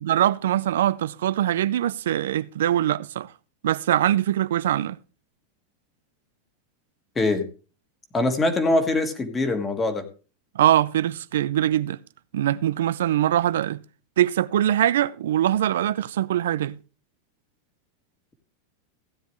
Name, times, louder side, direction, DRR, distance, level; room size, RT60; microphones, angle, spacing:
voice 1, 0.0-3.3 3.6-5.0 10.5-12.0 12.3-13.8 14.2-16.8, right 12 dB, 85° right, 0.5 m, -22 dB
voice 2, 8.1-10.0, left 2 dB, 15° left, 1.7 m, -23 dB
16.0 x 9.4 x 3.1 m
supercardioid pair, 160°, 0 cm